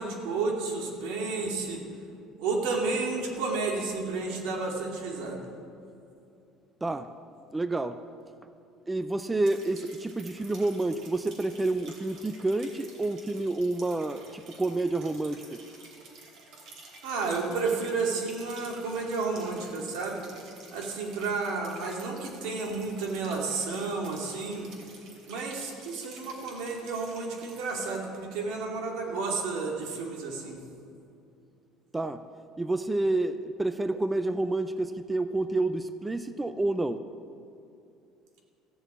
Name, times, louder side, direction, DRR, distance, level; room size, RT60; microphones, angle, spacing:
voice 1, 0.0-1.8 2.4-5.5 17.0-20.3 20.7-24.7 25.3-30.6, right 4 dB, 85° right, 0 dB, 2.5 m, -31 dB
voice 2, 7.5-8.1 8.9-15.6 31.9-32.2 32.6-37.0, right 2 dB, 10° right, 10 dB, 0.4 m, -29 dB
sound 1, 9.4-28.0, right 3 dB, 55° right, 3.0 m, -51 dB
15.0 x 7.0 x 8.3 m, 2.6 s
cardioid pair, 160°, 0 cm